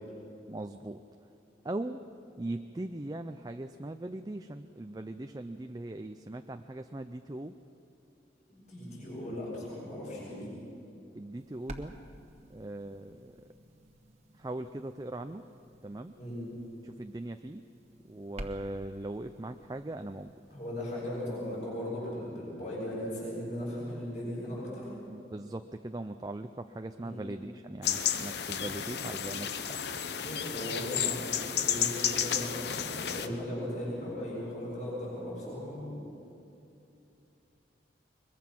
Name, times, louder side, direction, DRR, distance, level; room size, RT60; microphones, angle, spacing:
voice 1, 0.5-1.0 1.6-2.0 2.4-7.6 11.1-11.9 12.5-13.4 14.4-15.4 15.8-16.1 16.8-17.6 18.1-20.3 25.1-29.8, right 1 dB, 20° right, 7 dB, 0.4 m, -40 dB
voice 2, 8.5-10.5 16.2-16.4 20.5-24.9 27.0-27.2 30.2-31.2 31.6-36.0, left 1 dB, 40° left, -6 dB, 7.1 m, -37 dB
sound 1, 11.4-21.6, right 1 dB, 35° right, 1.3 m, -51 dB
sound 2, 27.8-33.3, left 8 dB, 65° left, 0.8 m, -32 dB
22.0 x 22.0 x 6.0 m, 2.7 s
head